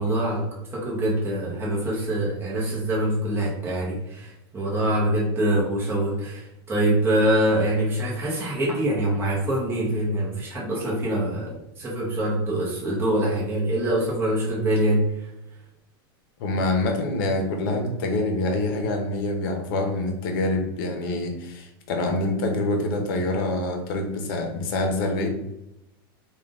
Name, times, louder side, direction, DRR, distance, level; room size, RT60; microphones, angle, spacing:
voice 1, 0.0-15.3, right 1 dB, 20° right, -5 dB, 1.2 m, -24 dB
voice 2, 16.4-25.3, left 2 dB, 65° left, 4 dB, 0.9 m, -26 dB
3.6 x 2.5 x 3.8 m, 0.87 s
supercardioid pair, 135°, 12 cm